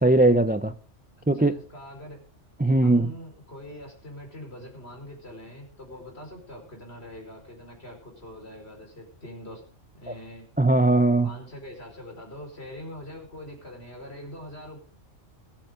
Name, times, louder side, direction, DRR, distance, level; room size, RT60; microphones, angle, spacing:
voice 1, 0.0-0.7 1.3-1.5 2.6-3.1 10.1-10.2 10.6-11.3, right 2 dB, 15° right, 0.4 m, -20 dB
voice 2, 1.3-2.2 2.8-9.6 9.9-10.5 11.2-14.8, left 1 dB, 60° left, 5.3 m, -43 dB
22.5 x 9.0 x 3.8 m
omnidirectional pair, 1.2 m